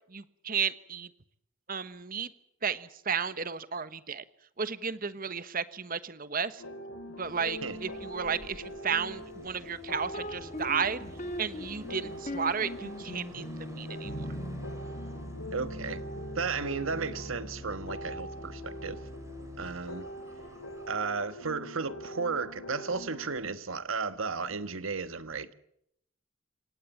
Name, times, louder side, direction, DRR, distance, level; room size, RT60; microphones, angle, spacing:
voice 1, 0.1-1.1 1.7-2.3 2.6-4.2 4.6-6.6 7.2-11.0 11.4-14.2, right 6 dB, 40° right, 1.2 m, -33 dB
sound 1, 6.6-23.4, equal, 90° left, 3.7 m, -43 dB
sound 2, 7.2-20.9, right 1 dB, 15° right, 4.5 m, -54 dB
sound 3, 10.1-19.9, equal, 35° left, 1.7 m, -41 dB
voice 2, 15.5-16.0 16.3-19.0 19.6-20.1 20.9-25.5, right 4 dB, 75° right, 1.5 m, -34 dB
28.0 x 17.5 x 7.3 m
head